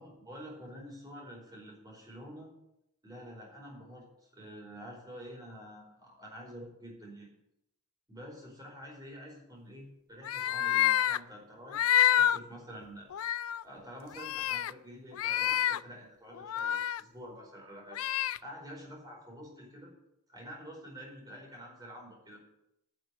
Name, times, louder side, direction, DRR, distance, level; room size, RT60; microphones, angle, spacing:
voice 1, 0.0-2.5 3.0-7.3 8.1-11.9 12.1-13.1 13.6-18.0 18.4-19.9 20.3-22.4, equal, 20° right, -2 dB, 4.7 m, -48 dB
sound 1, 10.2-11.2 11.7-12.4 12.8-12.9 13.1-13.6 14.2-14.7 15.2-15.8 16.4-17.0 17.9-18.4, left 11 dB, 75° left, 0.4 m, -28 dB
11.0 x 6.6 x 8.2 m, 0.85 s
head